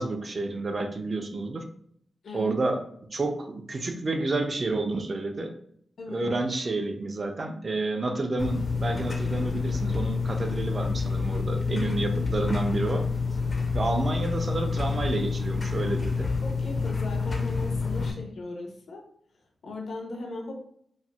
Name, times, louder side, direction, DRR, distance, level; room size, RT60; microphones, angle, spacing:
voice 1, 0.0-1.6 2.3-2.8 3.1-5.5 6.1-13.0 13.7-16.3, right 2 dB, 35° right, 5 dB, 0.4 m, -30 dB
voice 2, 2.2-2.6 6.0-6.3 11.7-12.3 16.4-19.1 19.6-20.6, left 2 dB, 70° left, 1 dB, 0.7 m, -38 dB
sound 1, 8.4-18.1, left 4 dB, 30° left, 0.5 m, -28 dB
4.1 x 2.0 x 2.3 m, 0.67 s
wide cardioid pair, 140°, 0 cm